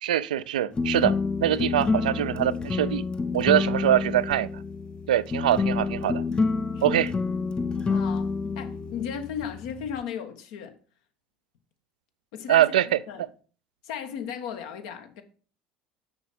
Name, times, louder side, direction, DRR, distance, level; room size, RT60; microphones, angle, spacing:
voice 1, 0.0-1.2 1.4-3.0 3.3-4.6 5.1-6.2 6.8-7.1 12.5-13.0, right 12 dB, 80° right, 0.3 m, -23 dB
sound 1, 0.7-10.0, left 4 dB, 20° left, 0.6 m, -28 dB
voice 2, 7.8-8.3 8.6-10.8 12.3-12.7 13.1-13.2 13.8-15.2, left 8 dB, 70° left, 1.1 m, -35 dB
6.8 x 6.2 x 4.2 m
hypercardioid pair, 65°, 4 cm